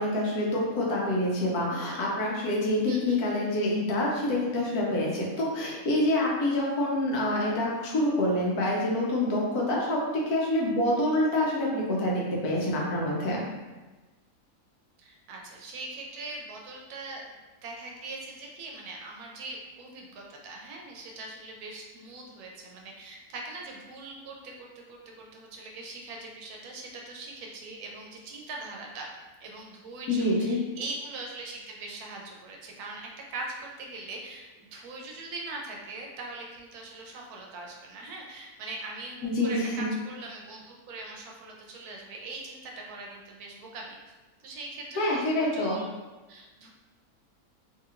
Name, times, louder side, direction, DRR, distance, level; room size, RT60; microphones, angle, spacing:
voice 1, 0.0-10.0 10.3-13.4 30.1-30.6 39.2-39.5 45.0-45.8, left 1 dB, 90° left, -3 dB, 1.3 m, -26 dB
voice 2, 2.9-3.2 15.0-29.1 29.4-44.0 44.4-45.9 46.3-46.7, right 2 dB, 85° right, 0 dB, 1.1 m, -41 dB
3.3 x 2.4 x 2.8 m, 1.2 s
omnidirectional pair, 1.6 m